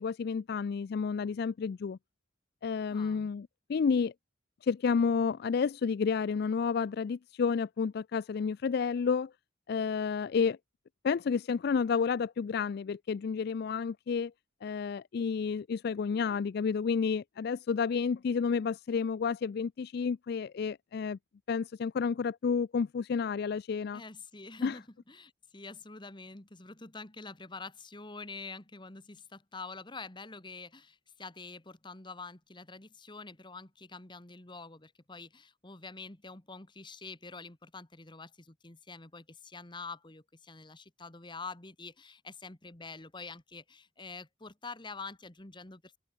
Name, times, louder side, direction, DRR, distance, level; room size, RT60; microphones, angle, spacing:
voice 1, 0.0-2.0 2.6-4.1 4.6-9.3 9.7-10.6 11.0-14.3 14.6-21.2 21.5-24.0 24.6-24.8, left 5 dB, 50° left, 0.3 m, -30 dB
voice 2, 2.9-3.3 23.9-46.0, left 4 dB, 25° left, 1.6 m, -46 dB
open air
head